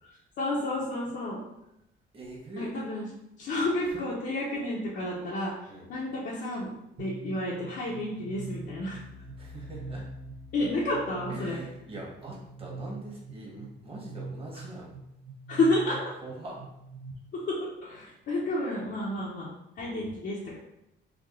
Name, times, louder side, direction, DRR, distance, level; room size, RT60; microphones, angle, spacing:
voice 1, 0.4-1.4 2.5-3.1 3.4-6.7 7.0-9.0 10.5-11.6 15.5-16.0 17.5-19.5 19.8-20.6, left 1 dB, 65° left, -6 dB, 0.9 m, -30 dB
voice 2, 2.1-2.7 3.7-4.0 5.7-5.9 9.3-10.1 11.3-14.9 15.8-15.9 16.2-16.6, right 2 dB, 30° right, -3 dB, 1.3 m, -43 dB
sound 1, 7.0-17.1, right 2 dB, 90° right, 0.6 m, -43 dB
3.5 x 2.3 x 3.6 m, 0.85 s
cardioid pair, 90°, 20 cm